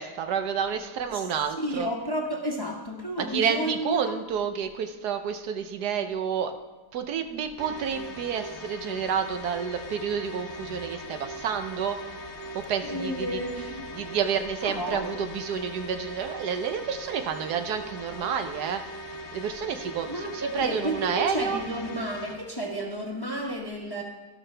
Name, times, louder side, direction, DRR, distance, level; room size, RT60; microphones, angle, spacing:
voice 1, 0.0-1.9 3.3-6.5 6.9-12.0 12.5-13.4 14.0-18.8 19.3-21.6, right 7 dB, 75° right, 7 dB, 1.3 m, -29 dB
voice 2, 1.6-4.2 12.8-14.1 14.6-15.2 17.2-17.4 20.1-24.0, equal, 15° left, 0 dB, 1.2 m, -32 dB
sound 1, 7.6-22.4, right 1 dB, 45° left, 1.2 m, -40 dB
12.5 x 12.0 x 3.3 m, 1.2 s
omnidirectional pair, 1.8 m